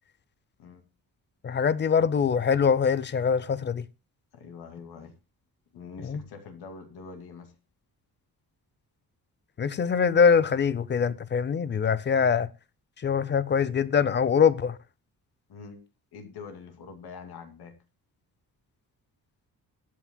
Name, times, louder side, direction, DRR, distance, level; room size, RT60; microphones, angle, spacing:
voice 1, 1.4-3.8 6.1-6.2 9.6-12.5 13.0-14.8, left 6 dB, 30° left, 0.5 m, -23 dB
voice 2, 4.3-5.2 5.7-7.5 15.5-15.8 16.1-17.8, left 5 dB, 85° left, 2.5 m, -44 dB
22.0 x 8.6 x 2.2 m
wide cardioid pair, 180°, 37 cm